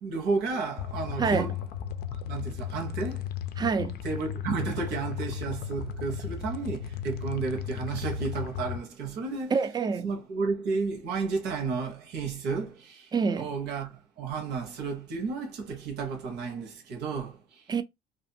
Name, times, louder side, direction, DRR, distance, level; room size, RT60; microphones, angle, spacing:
voice 1, 0.0-1.6 2.2-3.3 4.0-9.5 10.0-17.7, right 4 dB, 80° right, 1.1 m, -32 dB
sound 1, 0.8-8.8, left 9 dB, 70° left, 0.4 m, -35 dB
voice 2, 1.2-1.5 3.6-4.0 9.5-10.1 13.1-13.5 17.7-17.8, right 5 dB, 25° right, 0.4 m, -26 dB
2.6 x 2.5 x 2.6 m
cardioid pair, 110°, 17 cm